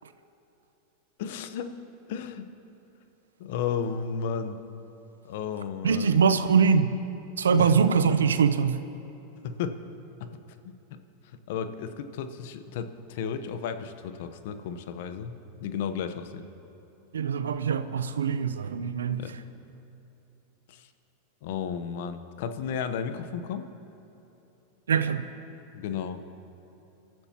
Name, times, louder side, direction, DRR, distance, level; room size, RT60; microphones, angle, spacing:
voice 1, 1.2-1.8 2.1-2.5 3.4-4.7 5.2-6.2 7.5-7.7 9.4-9.8 10.2-10.4 10.6-11.0 11.5-16.5 19.2-19.3 20.7-20.9 21.4-23.7 25.7-26.2, left 7 dB, 65° left, 10 dB, 0.9 m, -33 dB
voice 2, 5.8-6.9 7.4-8.8 17.1-19.2 24.9-25.3, right 6 dB, 85° right, 11 dB, 0.7 m, -23 dB
27.0 x 13.5 x 2.9 m, 3.0 s
hypercardioid pair, 100°, 0 cm